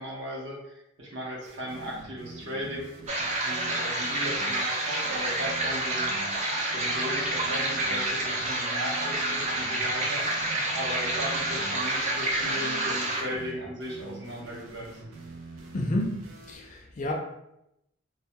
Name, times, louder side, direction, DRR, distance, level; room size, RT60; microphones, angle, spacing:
voice 1, 0.0-2.9 3.4-6.4 6.7-10.3 10.7-14.9, equal, 55° right, -4 dB, 0.7 m, -37 dB
sound 1, 1.4-16.6, right 3 dB, 90° right, 0.5 m, -45 dB
sound 2, 3.1-13.2, right 1 dB, 35° right, 0.4 m, -29 dB
voice 2, 15.7-16.2 16.5-17.1, left 1 dB, 35° left, 1 dB, 0.3 m, -29 dB
2.2 x 2.1 x 2.7 m, 0.83 s
head